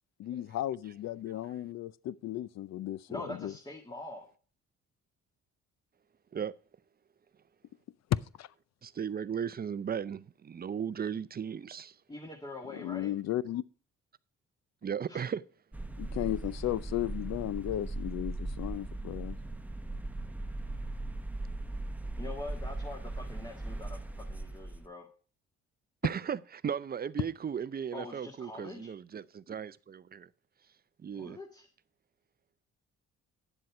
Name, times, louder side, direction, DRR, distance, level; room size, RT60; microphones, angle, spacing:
voice 1, 0.2-3.5 8.1-8.5 12.7-13.6 16.0-19.4, left 13 dB, 65° left, 0.6 m, -34 dB
voice 2, 3.1-4.3 12.1-13.1 15.1-15.2 22.2-25.1 27.9-28.9 31.1-31.7, left 2 dB, 15° left, 1.8 m, -44 dB
voice 3, 8.8-11.9 14.8-15.4 26.0-30.3 31.0-31.4, right 7 dB, 30° right, 0.5 m, -36 dB
sound 1, 15.7-24.9, right 2 dB, 5° right, 0.8 m, -38 dB
10.0 x 7.7 x 4.7 m
cardioid pair, 75°, 29 cm